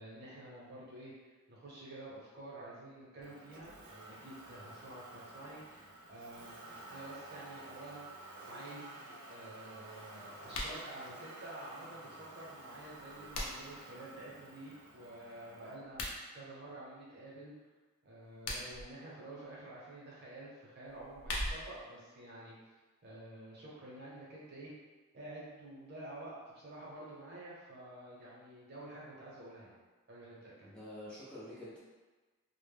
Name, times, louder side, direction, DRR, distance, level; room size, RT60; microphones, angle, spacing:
voice 1, 0.0-16.0 16.3-17.5 18.0-22.5 23.0-24.7 25.1-29.8 30.1-30.7, right 1 dB, 45° right, -6 dB, 0.7 m, -50 dB
Motor vehicle (road), 3.2-15.7, right 2 dB, 90° right, 0.5 m, -52 dB
sound 1, 10.5-10.8 12.8-13.8 15.8-16.2 18.2-18.9 20.9-21.8, left 1 dB, 80° left, 0.5 m, -40 dB
voice 2, 30.6-31.8, left 1 dB, 5° left, -10 dB, 0.4 m, -47 dB
2.1 x 2.0 x 3.3 m, 1.3 s
head